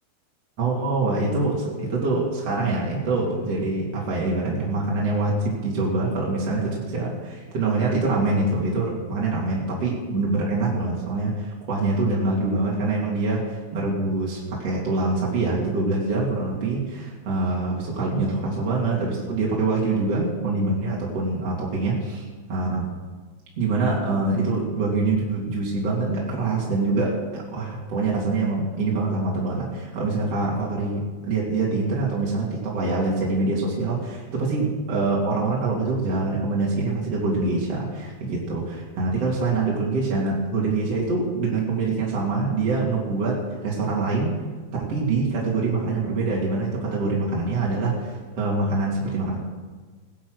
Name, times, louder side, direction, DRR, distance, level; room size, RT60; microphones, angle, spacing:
voice 1, 0.6-22.8 23.6-43.4 43.6-44.3 44.8-49.4, right 3 dB, 45° right, -4 dB, 3.5 m, -25 dB
17.0 x 11.5 x 6.4 m, 1.4 s
omnidirectional pair, 4.3 m